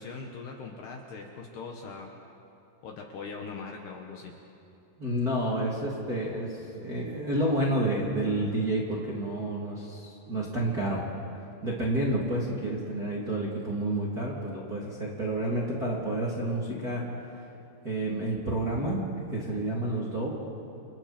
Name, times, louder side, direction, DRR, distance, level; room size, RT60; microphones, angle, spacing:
voice 1, 0.0-2.1 2.8-4.3, left 4 dB, 65° left, 1 dB, 3.0 m, -41 dB
voice 2, 5.0-11.0 11.6-17.0 17.3-17.4 17.8-19.0 19.3-20.3, right 1 dB, 25° right, -5 dB, 2.5 m, -29 dB
29.5 x 29.0 x 4.5 m, 2.9 s
omnidirectional pair, 5.9 m